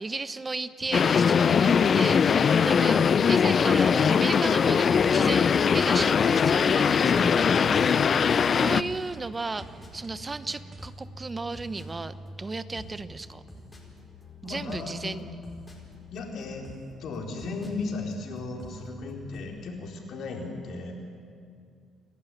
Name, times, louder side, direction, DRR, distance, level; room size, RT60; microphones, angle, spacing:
voice 1, 0.0-3.0 3.3-7.2 7.9-8.1 8.5-9.7 9.9-13.4 14.4-15.2, right 3 dB, 25° right, 13 dB, 0.9 m, -34 dB
sound 1, 0.9-8.8, left 6 dB, 45° left, 0.5 m, -21 dB
sound 2, 1.7-19.4, left 1 dB, 15° left, 4.8 m, -46 dB
sound 3, 5.1-10.9, right 4 dB, 40° right, 1.6 m, -50 dB
voice 2, 6.7-8.0 14.4-15.2 16.1-16.7 17.0-20.9, left 3 dB, 65° left, 0 dB, 4.1 m, -35 dB
28.5 x 12.0 x 9.3 m, 2.3 s
cardioid pair, 100°, 0 cm